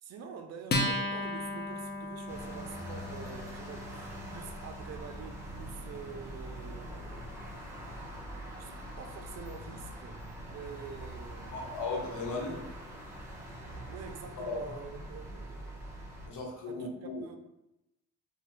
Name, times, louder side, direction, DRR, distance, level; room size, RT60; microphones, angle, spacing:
voice 1, 0.0-7.5 8.6-10.2 10.5-11.8 13.9-15.8 16.7-17.4, right 6 dB, 60° right, 6 dB, 0.4 m, -47 dB
Acoustic guitar, 0.7-7.5, left 1 dB, 35° left, 0.5 m, -37 dB
sound 1, 2.3-16.3, equal, 10° right, 0.8 m, -44 dB
voice 2, 11.5-12.7 14.5-14.6 16.3-17.2, left 3 dB, 75° left, -2 dB, 0.9 m, -36 dB
2.6 x 2.2 x 3.1 m, 0.90 s
cardioid pair, 90°, 30 cm